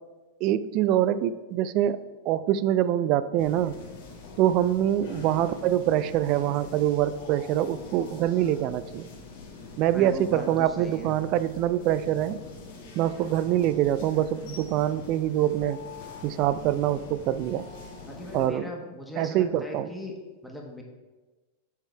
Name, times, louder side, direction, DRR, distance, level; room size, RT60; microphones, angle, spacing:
voice 1, 0.4-2.0 2.3-3.7 4.4-9.1 9.8-12.4 13.0-15.8 16.2-17.7 18.3-18.7 19.2-19.9, right 12 dB, 50° right, 15 dB, 0.3 m, -25 dB
sound 1, 3.4-18.5, left 4 dB, 65° left, 1.5 m, -44 dB
voice 2, 9.9-11.1 18.1-20.1 20.4-20.8, left 1 dB, 5° left, 0 dB, 1.4 m, -39 dB
7.3 x 3.8 x 4.5 m, 1.2 s
hypercardioid pair, 110°, 0 cm